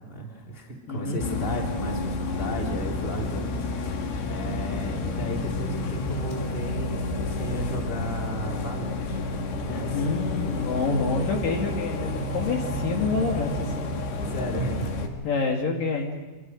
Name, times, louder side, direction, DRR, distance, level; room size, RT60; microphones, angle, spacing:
voice 1, 0.0-9.2 9.6-10.0 14.2-14.9, equal, 15° left, -1 dB, 3.4 m, -34 dB
voice 2, 0.9-1.2 9.9-13.9 15.2-16.2, left 4 dB, 65° left, 1 dB, 3.7 m, -27 dB
Bus, 1.2-15.1, left 2 dB, 90° left, 4.0 m, -30 dB
26.0 x 22.5 x 6.3 m, 1.3 s
omnidirectional pair, 4.4 m